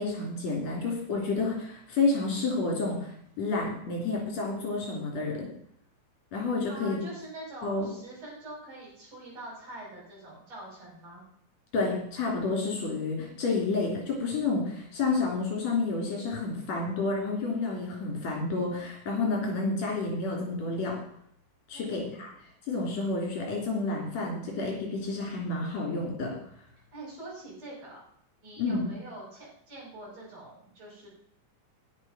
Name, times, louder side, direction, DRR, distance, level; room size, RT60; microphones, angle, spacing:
voice 1, 0.0-3.1 3.4-5.5 6.3-7.0 7.6-7.9 11.7-21.0 21.7-22.3 22.7-26.4 28.6-28.8, left 3 dB, 60° left, -1 dB, 4.3 m, -30 dB
voice 2, 6.7-11.2 21.7-22.3 26.9-28.0 28.4-31.1, right 2 dB, 55° right, -3 dB, 7.1 m, -44 dB
10.0 x 9.6 x 6.0 m, 0.67 s
omnidirectional pair, 3.6 m